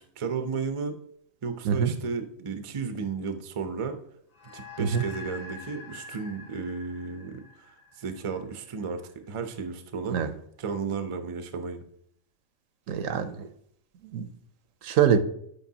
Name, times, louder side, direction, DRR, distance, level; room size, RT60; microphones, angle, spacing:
voice 1, 0.2-0.9 1.4-4.0 4.5-7.4 8.0-10.2 10.6-11.8, right 5 dB, 45° right, 7 dB, 0.4 m, -33 dB
sound 1, 4.3-9.0, left 3 dB, 70° left, 1.8 m, -46 dB
voice 2, 12.9-13.5 14.1-14.3 14.8-15.2, right 8 dB, 75° right, 10 dB, 1.0 m, -24 dB
8.2 x 4.7 x 2.7 m, 0.69 s
omnidirectional pair, 1.4 m